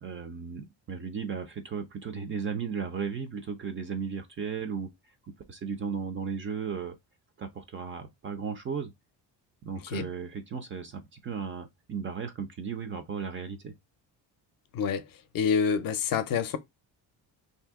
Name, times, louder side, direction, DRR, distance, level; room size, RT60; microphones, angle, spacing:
voice 1, 0.0-4.9 5.5-7.0 7.4-8.9 9.6-13.7, right 6 dB, 30° right, 0.4 m, -35 dB
voice 2, 14.7-15.0 15.3-16.6, left 6 dB, 55° left, 0.6 m, -27 dB
2.7 x 2.6 x 3.4 m
cardioid pair, 140°, 43 cm